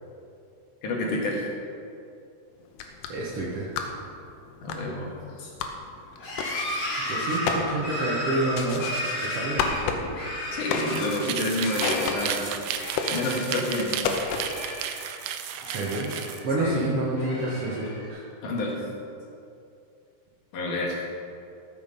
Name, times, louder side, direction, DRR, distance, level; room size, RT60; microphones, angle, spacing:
voice 1, 0.8-1.5 4.6-5.1 5.4-5.5 10.5-12.5 13.1-14.1 16.6-16.8 18.4-18.9 20.5-21.0, left 1 dB, 60° left, -2 dB, 2.8 m, -29 dB
sound 1, 2.6-14.7, left 5 dB, 85° left, 2.8 m, -34 dB
voice 2, 3.1-3.7 7.0-8.9 9.2-10.3 15.6-16.1 16.4-18.2, right 2 dB, 60° right, -5 dB, 1.5 m, -29 dB
sound 2, 6.2-11.3 11.6-12.4 12.7-13.7 14.0-15.2 15.6-16.6 17.1-18.1, equal, 40° left, 4.0 m, -34 dB
sound 3, 10.8-16.4, right 9 dB, 80° right, 2.5 m, -33 dB
13.5 x 7.4 x 5.5 m, 2.6 s
omnidirectional pair, 4.6 m